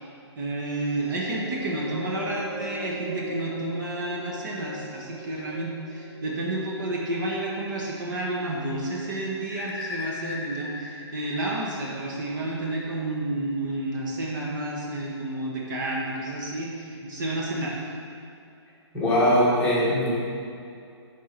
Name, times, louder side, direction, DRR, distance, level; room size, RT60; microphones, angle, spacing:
voice 1, 0.4-17.9, right 1 dB, 45° right, -3 dB, 1.3 m, -30 dB
sound 1, 1.0-7.7 8.3-8.4, equal, 25° right, 1.7 m, -40 dB
sound 2, 9.5-12.3, left 4 dB, 25° left, 1.1 m, -38 dB
voice 2, 18.9-20.1, equal, 5° left, -10 dB, 1.6 m, -21 dB
8.4 x 3.7 x 5.9 m, 2.5 s
hypercardioid pair, 155°, 15 cm